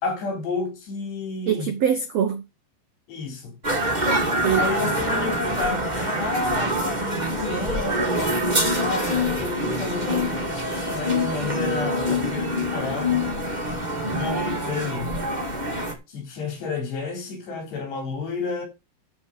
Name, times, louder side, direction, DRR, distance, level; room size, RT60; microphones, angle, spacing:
voice 1, 0.0-1.7 3.1-3.5 4.6-13.2 14.1-15.1 16.1-18.7, left 4 dB, 85° left, 6.0 m, -31 dB
voice 2, 1.5-2.4 3.6-4.0 4.4-4.9, right 8 dB, 80° right, 1.5 m, -25 dB
sound 1, 3.6-15.9, equal, 20° right, 1.3 m, -25 dB
12.0 x 5.0 x 6.6 m
omnidirectional pair, 4.7 m